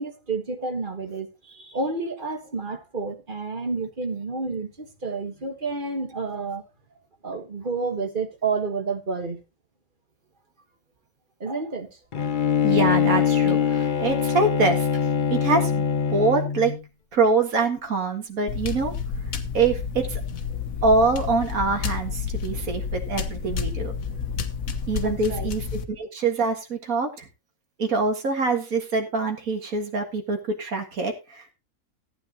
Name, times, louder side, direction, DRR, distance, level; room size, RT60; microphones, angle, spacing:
voice 1, 0.0-6.6 7.2-9.4 11.4-12.0 25.0-25.5, right 4 dB, 40° right, 1.5 m, -30 dB
Bowed string instrument, 12.1-16.8, left 7 dB, 45° left, 0.8 m, -23 dB
voice 2, 12.6-14.9 15.3-16.7 17.1-18.9 19.5-20.2 20.8-23.9 24.9-27.3 27.8-31.5, right 3 dB, 90° right, 2.2 m, -24 dB
sound 1, 18.5-25.8, left 6 dB, 80° left, 1.5 m, -30 dB
15.0 x 9.3 x 2.9 m
omnidirectional pair, 1.4 m